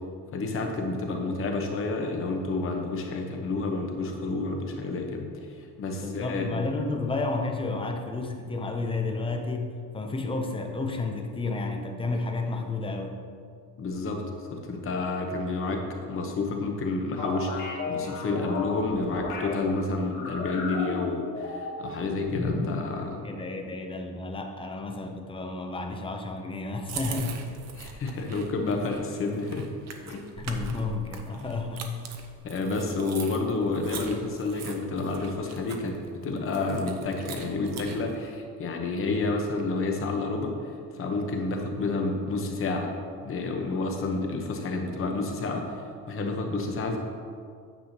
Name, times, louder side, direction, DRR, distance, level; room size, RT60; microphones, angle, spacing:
voice 1, 0.3-6.6 13.8-14.2 14.5-23.3 27.7-29.7 30.1-30.3 32.4-36.0 36.2-40.5 40.9-42.9 43.2-47.0, left 3 dB, 35° left, 3 dB, 0.9 m, -30 dB
voice 2, 5.9-13.2 23.2-27.3 30.4-31.9 36.4-36.5, left 3 dB, 15° left, 4 dB, 0.4 m, -31 dB
sound 1, 17.2-19.5 20.0-21.9 22.2-22.8, left 3 dB, 60° left, 1.8 m, -33 dB
sound 2, 26.9-38.1, right 5 dB, 45° right, 0.7 m, -42 dB
9.5 x 7.5 x 2.8 m, 2.2 s
cardioid pair, 175°, 36 cm